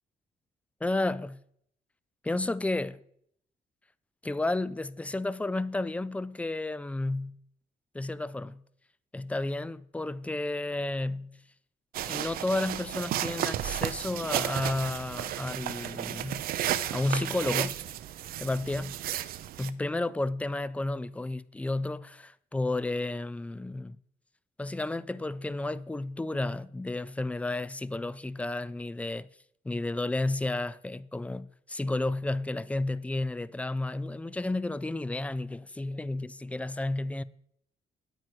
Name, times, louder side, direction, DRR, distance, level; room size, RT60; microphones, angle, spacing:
voice 1, 0.8-1.4 2.2-3.0 4.2-7.4 7.9-8.6 9.1-11.4 12.0-16.4 16.9-17.8 18.4-19.0 19.6-24.0 24.6-29.3 29.6-37.2, left 2 dB, 10° left, 0.3 m, -32 dB
sound 1, 11.9-19.7, right 12 dB, 75° right, 0.5 m, -33 dB
9.5 x 8.9 x 4.6 m
cardioid pair, 125°, 15 cm